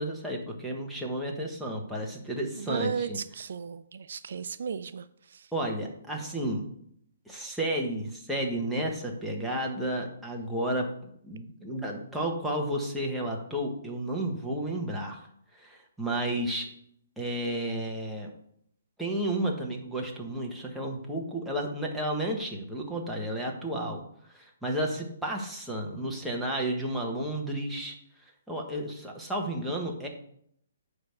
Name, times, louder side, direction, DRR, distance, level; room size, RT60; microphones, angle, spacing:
voice 1, 0.0-3.4 5.5-6.6 7.3-10.9 11.2-15.2 15.5-16.7 17.2-18.3 19.0-24.0 24.3-28.0 28.5-30.1, right 1 dB, ahead, -3 dB, 1.1 m, -32 dB
voice 2, 2.7-5.0, right 6 dB, 60° right, 13 dB, 0.4 m, -34 dB
9.6 x 3.5 x 6.6 m, 0.69 s
hypercardioid pair, 165°, 0 cm